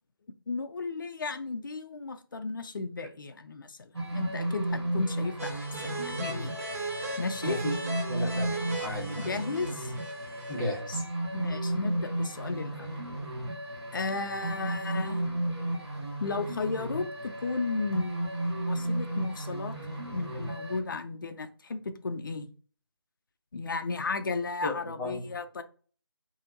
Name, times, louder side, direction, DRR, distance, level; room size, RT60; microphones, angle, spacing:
voice 1, 0.5-6.5 7.2-7.6 9.1-9.9 11.3-12.9 13.9-15.2 16.2-19.8 20.1-22.5 23.5-25.6, left 3 dB, 50° left, 0.5 m, -34 dB
sound 1, 3.9-20.8, right 1 dB, 85° right, 1.5 m, -34 dB
sound 2, 5.4-10.8, right 2 dB, 35° right, 1.1 m, -38 dB
voice 2, 7.4-7.8 8.1-9.4 10.5-11.1 24.6-25.2, left 1 dB, 5° left, 0.9 m, -34 dB
4.2 x 2.7 x 2.6 m
figure-of-eight pair, 155°, 14 cm